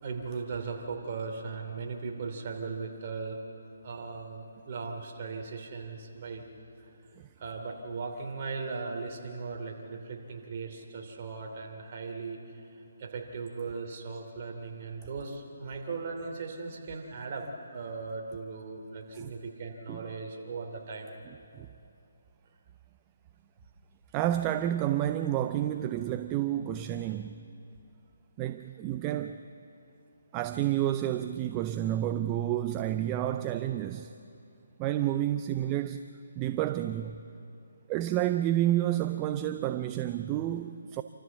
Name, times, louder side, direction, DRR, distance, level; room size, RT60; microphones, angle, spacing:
voice 1, 0.0-3.4 3.8-6.5 7.4-12.6 13.0-21.1, right 4 dB, 40° right, 3.0 m, -38 dB
voice 2, 21.2-21.7 24.1-27.4 28.4-29.4 30.3-34.2 34.8-36.1 36.4-37.2 37.9-41.0, right 12 dB, 20° right, 0.5 m, -30 dB
27.0 x 14.0 x 7.4 m
hypercardioid pair, 160°, 0 cm